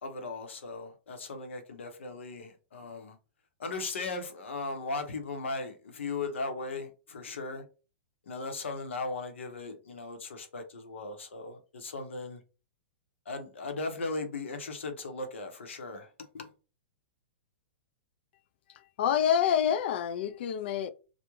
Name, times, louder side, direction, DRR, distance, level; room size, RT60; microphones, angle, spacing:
voice 1, 0.0-3.2 3.6-7.6 8.3-12.4 13.3-16.1 16.3-16.5, left 3 dB, 85° left, 0.7 m, -37 dB
voice 2, 19.0-20.9, left 9 dB, 60° left, 0.3 m, -27 dB
2.3 x 2.1 x 3.0 m
hypercardioid pair, 130°, 6 cm